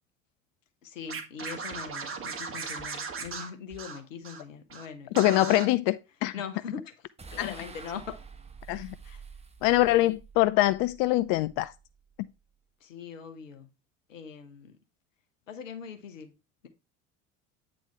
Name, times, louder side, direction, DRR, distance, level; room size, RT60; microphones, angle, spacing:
voice 1, 0.8-5.6 6.3-8.2 9.0-9.2 9.8-10.1 12.8-13.7 14.1-14.8 15.5-16.3, left 6 dB, 75° left, 1.2 m, -42 dB
Scratching (performance technique), 1.1-4.4 4.7-4.9 5.1-5.7, right 5 dB, 35° right, 1.8 m, -37 dB
voice 2, 5.2-5.9 6.2-6.3 7.4-7.5 8.7-8.9 9.6-11.7, left 16 dB, 50° left, 0.5 m, -23 dB
sound 1, 7.2-12.5, right 5 dB, 15° right, 1.1 m, -49 dB
8.8 x 3.9 x 4.7 m
figure-of-eight pair, 65°, 39 cm